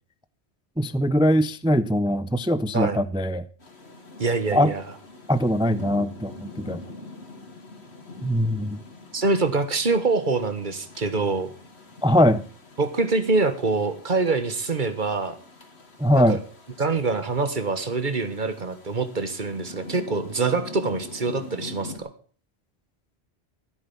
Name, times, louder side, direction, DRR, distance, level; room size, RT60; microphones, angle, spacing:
voice 1, 0.8-3.5 4.5-4.7 5.3-6.8 8.2-8.8 12.0-12.4 16.0-16.4, equal, 5° right, 0.4 m, -21 dB
Rain, 3.6-22.0, left 2 dB, 75° left, 2.5 m, -44 dB
voice 2, 4.2-4.8 9.1-11.5 12.8-15.4 16.1-16.4 16.8-22.1, right 3 dB, 50° right, 1.5 m, -25 dB
14.5 x 8.5 x 7.1 m
omnidirectional pair, 1.1 m